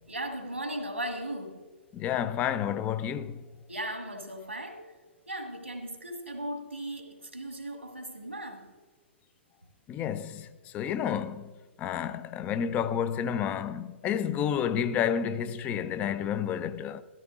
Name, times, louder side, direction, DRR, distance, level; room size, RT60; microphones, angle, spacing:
voice 1, 0.1-1.7 3.7-4.9 5.3-8.7, right 1 dB, 90° right, 1.7 m, -37 dB
voice 2, 1.9-3.4 9.9-10.5 10.7-11.5 11.8-17.0, left 8 dB, 20° left, 0.4 m, -30 dB
13.5 x 13.5 x 2.5 m
figure-of-eight pair, 115°, 6 cm